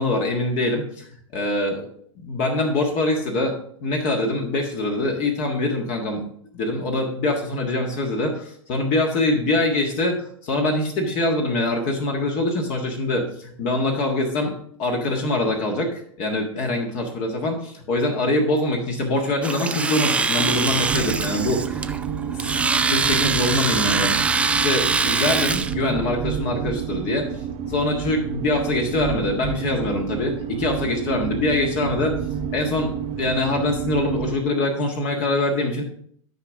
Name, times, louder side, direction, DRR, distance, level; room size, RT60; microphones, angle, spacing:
voice 1, 0.0-1.9 2.2-3.5 3.8-6.2 6.5-21.9 22.3-22.6 22.9-27.3 27.7-32.1 32.5-35.8, left 2 dB, 45° left, 1 dB, 1.6 m, -24 dB
Domestic sounds home sounds, 19.4-25.7, right 4 dB, 5° right, 0.3 m, -23 dB
sound 1, 20.4-34.4, right 8 dB, 35° right, 0.7 m, -29 dB
12.5 x 5.1 x 3.5 m, 0.65 s
hypercardioid pair, 120°, 17 cm